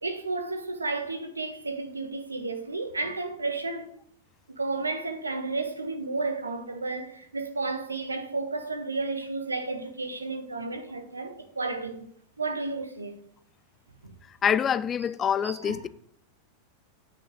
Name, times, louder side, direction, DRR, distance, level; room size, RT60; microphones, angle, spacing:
voice 1, 0.0-3.9 4.6-12.1 12.4-13.2 14.0-14.1 15.4-15.9, right 3 dB, 80° right, 1.3 m, -32 dB
voice 2, 14.4-15.9, left 8 dB, 25° left, 0.4 m, -25 dB
9.8 x 6.0 x 7.9 m
figure-of-eight pair, 90°, 0 cm